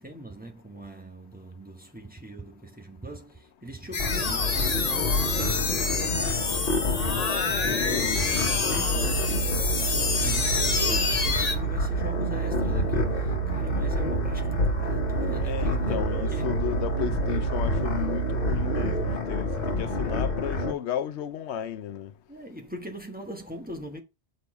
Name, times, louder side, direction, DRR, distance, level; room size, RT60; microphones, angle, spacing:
voice 1, 0.0-16.5 19.6-20.2 22.3-24.0, equal, 10° right, 1.1 m, -41 dB
sound 1, 3.9-11.6, left 4 dB, 40° left, 0.9 m, -27 dB
sound 2, 4.0-20.7, left 3 dB, 55° left, 1.3 m, -29 dB
voice 2, 7.7-8.2 15.4-22.1, left 9 dB, 90° left, 0.9 m, -33 dB
sound 3, 8.9-19.2, right 13 dB, 85° right, 0.9 m, -30 dB
6.9 x 4.0 x 4.7 m
omnidirectional pair, 1.1 m